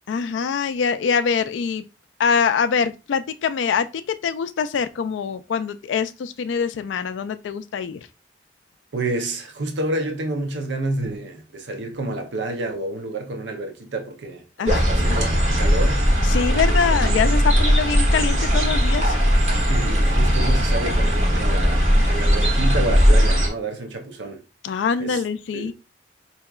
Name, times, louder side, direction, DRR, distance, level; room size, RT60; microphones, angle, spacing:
voice 1, 0.1-1.8 2.2-8.0 14.6-14.9 16.3-19.2 24.6-25.7, left 6 dB, 85° left, 0.3 m, -24 dB
voice 2, 8.9-16.1 16.5-17.2 19.7-24.4 25.0-25.2 25.5-25.7, right 2 dB, 75° right, 0.6 m, -29 dB
sound 1, 14.7-23.5, equal, 35° right, 1.0 m, -18 dB
4.6 x 2.8 x 2.3 m
head